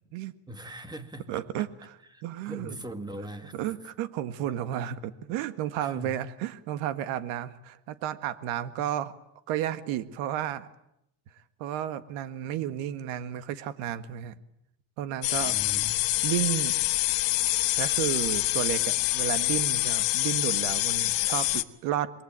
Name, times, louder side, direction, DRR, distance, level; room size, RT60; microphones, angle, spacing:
voice 1, 0.5-1.4 2.1-3.6 3.8-3.9 5.8-6.2 15.4-16.1, equal, 10° right, 8 dB, 2.1 m, -41 dB
voice 2, 1.3-1.9 2.2-2.8 3.5-9.1 9.5-10.7 11.6-14.4 15.0-15.5 16.2-16.7 17.8-22.1, right 11 dB, 85° right, 11 dB, 1.8 m, -32 dB
sound 1, 15.2-21.6, left 18 dB, 65° left, 1.5 m, -26 dB
28.0 x 22.5 x 8.9 m, 0.80 s
cardioid pair, 140°, 47 cm